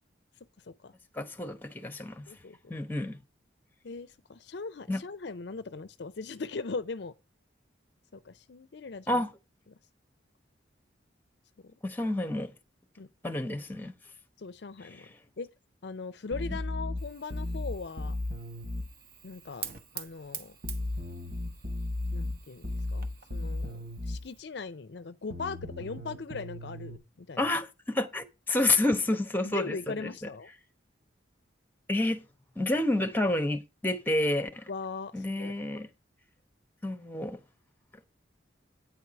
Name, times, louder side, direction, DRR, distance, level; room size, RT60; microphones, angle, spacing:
voice 1, 1.1-2.2 2.7-3.2 4.9-5.0 9.1-9.3 11.8-12.5 13.2-13.9 15.0-15.1 27.4-30.1 31.9-32.2 32.6-34.6 35.1-35.9 36.8-37.4, left 2 dB, 10° left, 1.0 m, -29 dB
voice 2, 2.3-2.7 3.8-7.1 8.1-9.2 11.6-11.7 13.0-13.1 14.4-15.1 15.4-15.5 15.8-18.2 19.2-19.7 19.9-20.5 22.1-27.5 29.4-30.5 34.7-35.5, left 4 dB, 60° left, 0.5 m, -39 dB
sound 1, 16.3-18.9 20.6-24.3 25.3-27.0, left 1 dB, 75° right, 3.0 m, -35 dB
Fire, 17.0-24.4, right 8 dB, 45° right, 1.1 m, -47 dB
9.3 x 4.7 x 6.8 m
head